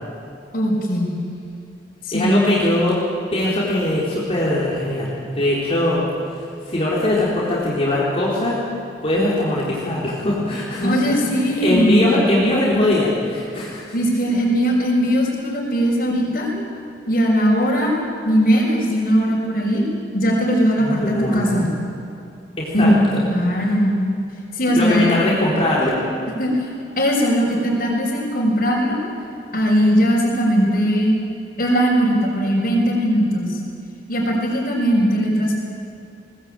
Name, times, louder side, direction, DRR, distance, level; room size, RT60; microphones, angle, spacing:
voice 1, 0.5-1.1 2.0-2.5 10.8-12.1 13.9-16.5 17.1-18.0 18.2-19.8 20.1-21.7 22.7-24.0 24.5-25.2 26.4-26.7 27.0-29.0 29.5-31.2 31.6-33.6 34.1-35.6, equal, 50° left, -7 dB, 5.1 m, -19 dB
voice 2, 2.1-3.0 3.3-6.1 6.3-8.6 9.0-13.8 20.8-21.5 22.6-23.2 23.6-23.7 24.8-25.9, left 1 dB, 35° left, -6 dB, 4.0 m, -21 dB
22.0 x 19.0 x 8.9 m, 2.7 s
head